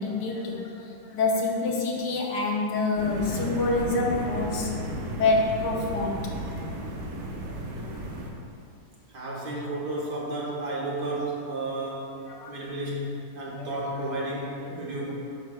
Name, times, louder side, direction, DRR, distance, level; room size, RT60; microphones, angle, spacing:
voice 1, 0.0-4.8 5.2-6.6 12.3-12.6 13.6-13.7 14.6-15.0, left 3 dB, 90° left, -1 dB, 1.5 m, -27 dB
sound 1, 3.0-8.3, right 1 dB, 65° right, 1.1 m, -34 dB
voice 2, 9.1-12.2 12.5-15.1, right 1 dB, 80° right, -5 dB, 2.0 m, -32 dB
9.1 x 6.3 x 2.3 m, 2.5 s
omnidirectional pair, 1.8 m